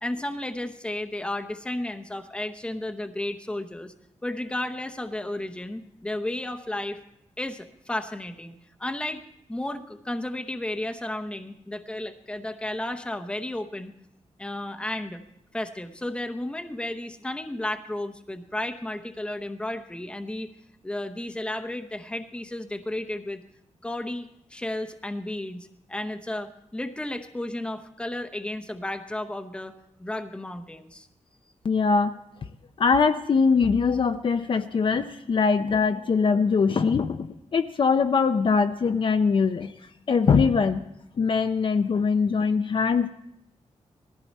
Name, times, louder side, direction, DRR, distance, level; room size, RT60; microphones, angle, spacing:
voice 1, 0.0-3.9 4.2-7.0 7.4-9.2 9.5-13.9 14.4-15.2 15.5-20.5 20.8-23.4 23.8-29.7 30.0-31.1, left 1 dB, 10° left, 6 dB, 0.8 m, -33 dB
voice 2, 31.6-32.1 32.8-39.7 40.1-40.9 41.2-43.1, left 5 dB, 45° left, 8 dB, 0.5 m, -22 dB
19.5 x 14.0 x 4.2 m, 0.79 s
wide cardioid pair, 175°, 12 cm